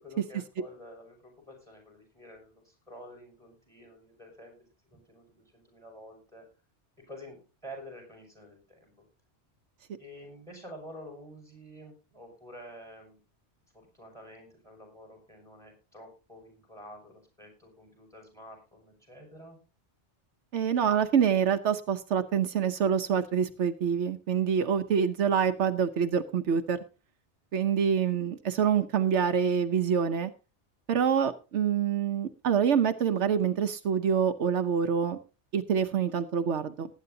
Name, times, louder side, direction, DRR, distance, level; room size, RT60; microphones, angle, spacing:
voice 1, 0.0-4.6 4.8-6.5 7.1-9.0 10.0-13.2 13.7-19.6, equal, 5° left, 2 dB, 5.8 m, -49 dB
voice 2, 20.5-26.8 27.5-30.3 30.9-35.2 35.5-36.9, right 7 dB, 80° right, 8 dB, 1.1 m, -26 dB
19.0 x 9.4 x 2.7 m, 0.31 s
omnidirectional pair, 1.2 m